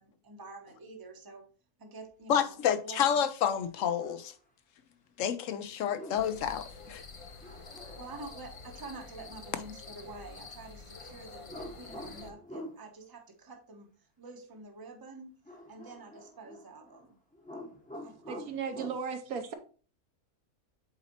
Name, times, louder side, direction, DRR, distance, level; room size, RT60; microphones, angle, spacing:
voice 1, 0.0-1.4 1.8-3.0 7.9-15.3 15.7-17.2 18.0-18.4, right 3 dB, 20° right, 0.7 m, -48 dB
voice 2, 2.3-4.3 5.2-7.0, left 8 dB, 65° left, 0.9 m, -29 dB
sound 1, 3.7-4.3 5.8-6.4 7.4-8.5 11.5-12.8 15.5-17.1 17.3-19.0, left 1 dB, 5° left, 0.8 m, -46 dB
sound 2, 6.2-12.3, left 4 dB, 45° left, 0.4 m, -48 dB
voice 3, 18.3-19.5, right 6 dB, 70° right, 1.2 m, -36 dB
7.9 x 4.2 x 2.9 m
omnidirectional pair, 1.6 m